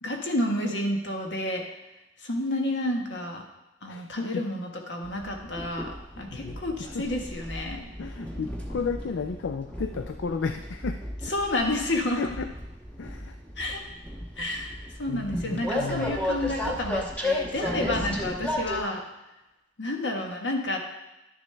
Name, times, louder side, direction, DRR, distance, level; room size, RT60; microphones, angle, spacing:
voice 1, 0.0-1.6 2.2-3.4 3.8-7.9 11.3-12.2 13.6-13.8 14.4-19.0 19.8-20.8, left 1 dB, 70° left, 2 dB, 1.4 m, -30 dB
voice 2, 3.9-4.4 6.3-7.0 8.0-11.0 12.2-12.5 13.0-13.4 15.1-16.2, left 5 dB, 85° left, 7 dB, 0.4 m, -33 dB
Train, 5.0-18.8, left 1 dB, 10° left, 1.1 m, -34 dB
11.0 x 6.9 x 3.4 m, 0.98 s
head